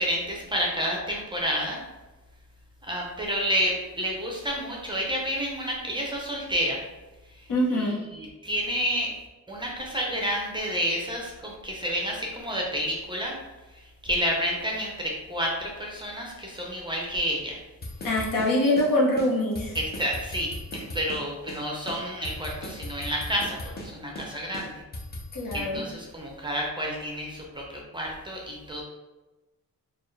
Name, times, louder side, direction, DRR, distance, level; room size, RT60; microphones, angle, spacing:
voice 1, 0.0-1.8 2.8-6.8 7.4-7.5 7.7-9.1 9.5-13.3 14.0-17.6 19.7-24.8 25.5-28.8, equal, 15° right, -2 dB, 0.6 m, -30 dB
voice 2, 7.5-8.0 18.0-19.7 25.3-25.8, left 1 dB, 70° left, -2 dB, 1.0 m, -24 dB
sound 1, 17.8-18.9 19.2-19.3 19.5-21.2 21.5-21.6 21.9-23.9 24.2-24.3 24.5-25.6, left 1 dB, 30° left, 0.7 m, -37 dB
4.2 x 2.4 x 3.2 m, 1.1 s
wide cardioid pair, 155°, 35 cm